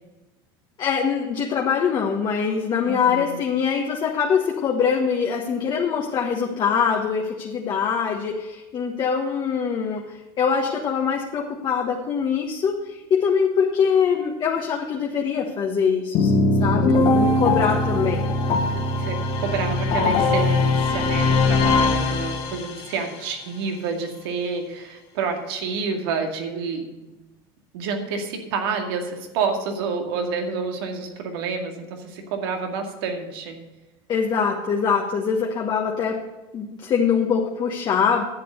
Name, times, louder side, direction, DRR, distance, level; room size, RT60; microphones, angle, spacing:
voice 1, 0.8-18.2 34.1-36.2 36.5-38.2, left 6 dB, 35° left, 0 dB, 1.4 m, -23 dB
voice 2, 2.8-3.4 16.6-17.2 19.0-27.1 27.7-33.6, right 5 dB, 80° right, 4 dB, 2.2 m, -29 dB
sound 1, 16.1-22.9, left 3 dB, 55° left, 2.2 m, -21 dB
10.0 x 7.8 x 6.5 m, 1.1 s
supercardioid pair, 120°, 12 cm